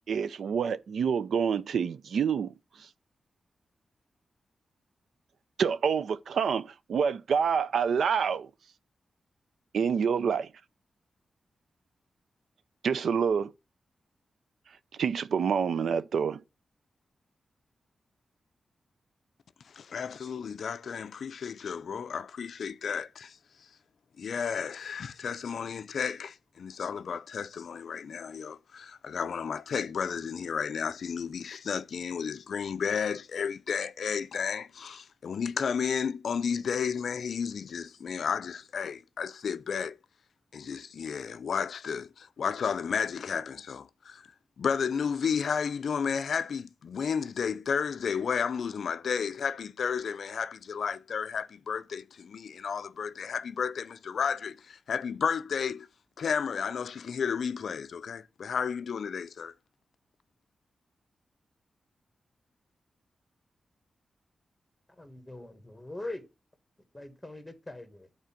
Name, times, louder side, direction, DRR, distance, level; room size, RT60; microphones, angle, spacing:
voice 1, 0.1-2.5 2.8-2.9 5.6-8.5 9.7-10.5 12.8-13.5 15.0-16.4, right 6 dB, 85° right, 0.5 m, -27 dB
voice 2, 19.7-23.4 24.2-40.0 40.5-44.3 44.6-55.9 56.2-59.5, left 6 dB, 70° left, 0.4 m, -32 dB
voice 3, 65.0-66.2 66.9-68.1, left 2 dB, 5° left, 1.5 m, -42 dB
9.4 x 4.3 x 5.8 m
wide cardioid pair, 145°, 0 cm